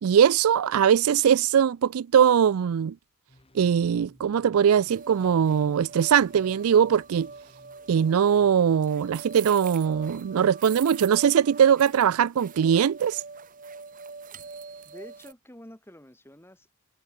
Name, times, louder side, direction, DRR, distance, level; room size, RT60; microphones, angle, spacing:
voice 1, 0.0-2.9 3.5-7.3 7.9-13.2, right 8 dB, 85° right, 0.4 m, -21 dB
sound 1, 3.3-8.5, left 1 dB, 25° left, 2.2 m, -58 dB
sound 2, 4.9-15.3, right 5 dB, 40° right, 1.2 m, -43 dB
voice 2, 14.8-16.7, equal, 10° left, 2.7 m, -48 dB
head